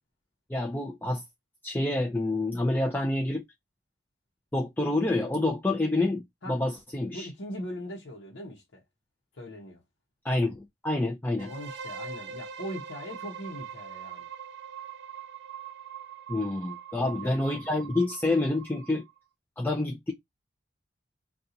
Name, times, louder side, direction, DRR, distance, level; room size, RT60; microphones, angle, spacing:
voice 1, 0.5-1.2 1.6-3.4 4.5-7.3 10.2-11.5 16.3-19.0 19.6-20.1, left 2 dB, 10° left, 0.4 m, -28 dB
voice 2, 7.1-8.8 9.3-9.8 11.4-14.3 17.0-17.4, equal, 85° left, 0.8 m, -40 dB
sound 1, 11.4-19.2, right 7 dB, 70° right, 0.5 m, -42 dB
2.8 x 2.3 x 3.7 m
head